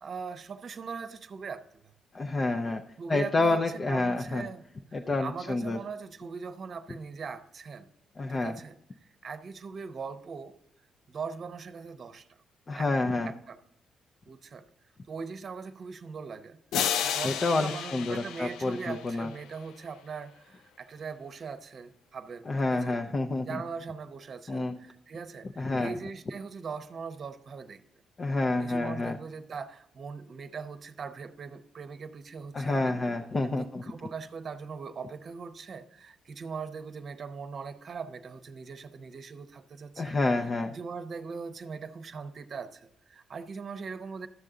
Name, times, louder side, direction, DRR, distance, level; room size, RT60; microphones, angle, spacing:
voice 1, 0.0-1.9 3.0-4.6 4.9-7.9 8.3-8.8 9.2-10.5 11.1-12.3 12.7-12.9 13.2-13.6 14.3-14.6 15.1-23.0 23.4-27.8 28.6-32.9 33.4-40.2 40.7-44.3, right 5 dB, 50° right, 9 dB, 0.8 m, -40 dB
voice 2, 2.1-2.8 3.1-4.5 4.9-5.8 8.2-8.5 12.7-13.3 17.2-19.3 22.5-23.6 24.5-24.8 25.6-25.9 28.2-29.2 32.5-33.8 40.0-40.7, left 2 dB, 35° left, 4 dB, 0.6 m, -28 dB
sound 1, 16.7-19.4, left 9 dB, 85° left, 0.4 m, -32 dB
12.5 x 6.7 x 3.7 m, 0.75 s
cardioid pair, 90°, 0 cm